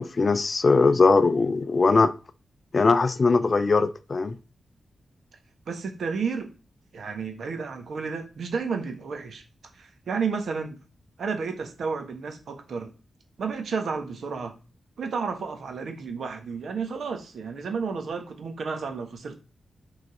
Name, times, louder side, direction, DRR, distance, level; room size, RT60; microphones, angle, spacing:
voice 1, 0.0-2.1 2.7-4.4, left 4 dB, 35° left, 0.5 m, -20 dB
voice 2, 5.7-6.5 6.9-9.4 9.7-10.8 11.2-12.9 13.4-14.5 15.0-19.4, right 5 dB, 70° right, 1.4 m, -31 dB
6.8 x 4.0 x 4.9 m
wide cardioid pair, 170°, 0 cm